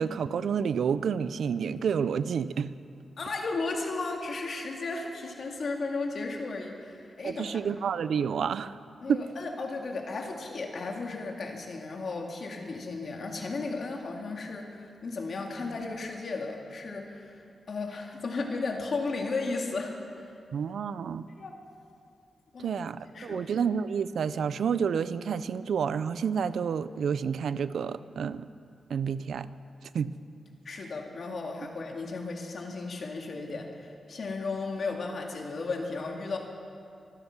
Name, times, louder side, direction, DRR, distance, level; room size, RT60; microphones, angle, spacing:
voice 1, 0.0-2.7 7.2-8.7 9.1-9.3 20.5-21.3 22.6-28.5 28.9-29.5 29.9-30.1, right 7 dB, 80° right, 15 dB, 0.5 m, -29 dB
voice 2, 3.2-7.5 9.0-17.4 17.7-20.3 21.3-21.6 22.5-22.8 23.1-23.5 30.6-36.4, left 3 dB, 60° left, 2 dB, 2.1 m, -35 dB
24.5 x 9.8 x 6.0 m, 2.4 s
wide cardioid pair, 105°, 0 cm